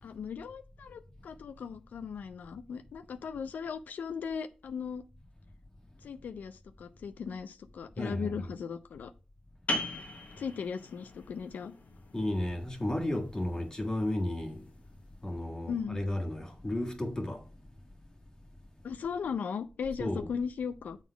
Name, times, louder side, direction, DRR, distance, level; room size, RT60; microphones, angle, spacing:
voice 1, 0.0-5.0 6.0-9.1 9.7-10.0 10.4-11.7 15.7-16.0 18.8-21.0, left 6 dB, 80° left, 0.5 m, -38 dB
voice 2, 8.0-8.3 12.1-14.6 15.2-17.4 20.0-20.3, left 1 dB, 25° left, 1.5 m, -33 dB
sound 1, 9.7-15.0, left 1 dB, 65° left, 1.7 m, -40 dB
7.1 x 4.1 x 5.6 m
cardioid pair, 70°, 3 cm